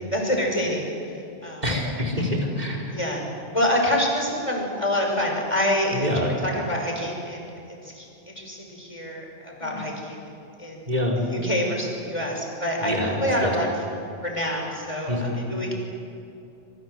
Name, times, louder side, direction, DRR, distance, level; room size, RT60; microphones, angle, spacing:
voice 1, 0.1-0.8 1.4-1.6 2.9-3.2 3.5-7.5 7.8-10.2 10.6-10.9 11.3-13.7 14.2-15.7, left 1 dB, 30° left, 0 dB, 6.1 m, -26 dB
voice 2, 1.6-3.0 5.9-6.3 9.6-9.8 10.9-11.2 12.8-13.5 15.1-15.4, left 1 dB, 40° right, 0 dB, 5.2 m, -26 dB
27.5 x 25.0 x 7.8 m, 2.7 s
omnidirectional pair, 1.1 m